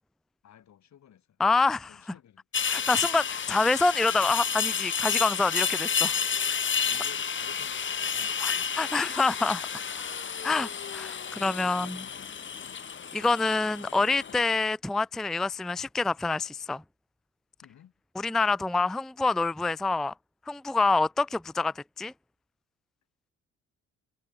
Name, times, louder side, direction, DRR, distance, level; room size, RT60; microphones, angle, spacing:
voice 1, 0.4-1.4 1.9-2.4 2.8-2.9 6.8-9.3 10.6-10.7 11.1-12.9 17.6-17.9, left 10 dB, 65° left, 6.0 m, -54 dB
voice 2, 1.4-2.0 2.7-6.2 8.4-9.6 10.4-12.0 13.1-16.8 18.2-20.1 20.5-22.1, left 3 dB, ahead, 0.4 m, -26 dB
sound 1, 2.5-14.4, left 7 dB, 40° left, 1.7 m, -31 dB
cardioid pair, 90°, 30 cm